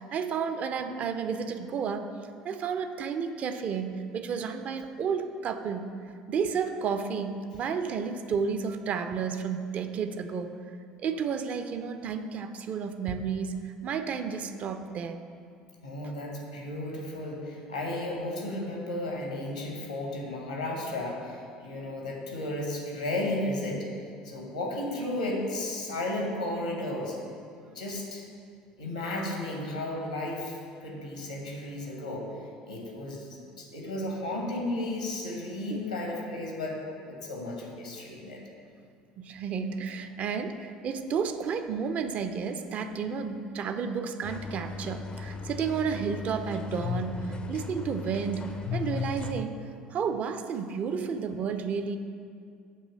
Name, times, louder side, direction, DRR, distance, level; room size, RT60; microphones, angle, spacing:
voice 1, 0.0-2.1 2.4-5.9 6.3-10.6 11.0-15.2 35.7-35.8 39.2-49.6 49.9-52.0, right 6 dB, 40° right, 9 dB, 0.4 m, -32 dB
voice 2, 15.8-23.9 24.2-27.2 27.7-28.2 28.8-30.6 30.8-32.3 32.7-33.3 33.6-36.8 37.1-38.4 46.8-47.0 48.6-49.2, left 2 dB, 85° left, -1 dB, 1.1 m, -33 dB
sound 1, 44.2-49.4, left 4 dB, 25° left, 0.4 m, -39 dB
7.6 x 3.1 x 6.1 m, 2.3 s
figure-of-eight pair, 65°, 4 cm